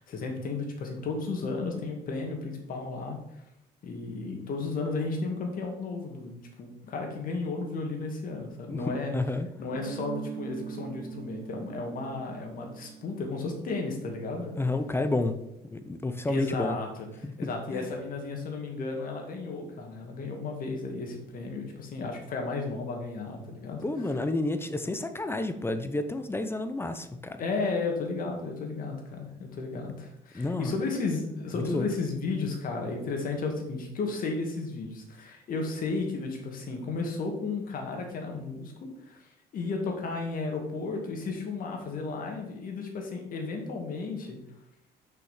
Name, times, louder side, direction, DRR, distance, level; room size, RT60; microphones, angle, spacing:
voice 1, 0.0-3.2 3.8-9.1 9.6-14.6 16.3-23.8 27.4-39.2 39.5-44.4, left 3 dB, 55° left, 2 dB, 2.1 m, -34 dB
voice 2, 9.1-9.5 14.5-15.4 15.7-16.8 17.2-17.8 23.8-27.4 30.3-30.7 31.7-31.9, left 2 dB, 15° left, 9 dB, 0.7 m, -30 dB
Guitar, 9.7-14.3, right 6 dB, 60° right, 1.7 m, -41 dB
6.3 x 5.8 x 5.8 m, 0.85 s
cardioid pair, 110°, 17 cm